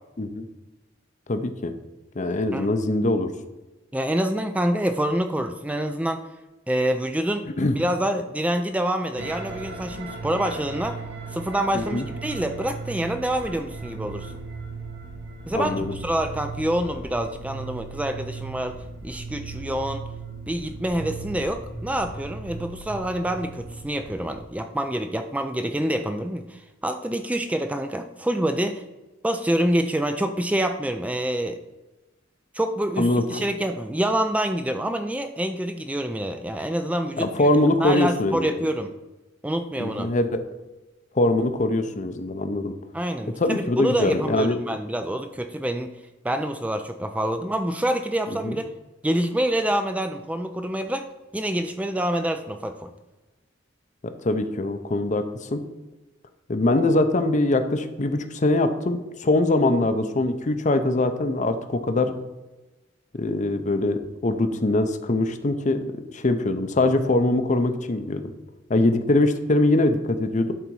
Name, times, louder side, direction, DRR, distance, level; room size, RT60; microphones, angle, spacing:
voice 1, 1.3-1.7 2.2-3.3 7.6-7.7 11.7-12.0 15.5-15.9 33.0-33.4 37.2-38.5 39.8-40.4 41.2-42.7 43.4-44.6 48.4-48.6 54.0-55.6 56.5-62.1 63.2-65.8 66.1-68.3 68.7-70.5, left 2 dB, 40° left, 9 dB, 0.6 m, -22 dB
voice 2, 3.9-6.2 6.7-7.5 7.7-11.0 11.3-14.3 15.5-18.8 19.0-20.0 20.5-28.8 29.2-31.6 32.5-37.3 37.8-38.9 39.4-40.1 42.9-45.9 46.2-48.7 49.0-51.1 51.3-52.9, right 1 dB, 5° right, 7 dB, 0.3 m, -26 dB
sound 1, 9.2-24.4, right 3 dB, 60° right, 1.2 m, -37 dB
11.0 x 4.0 x 4.7 m, 1.1 s
head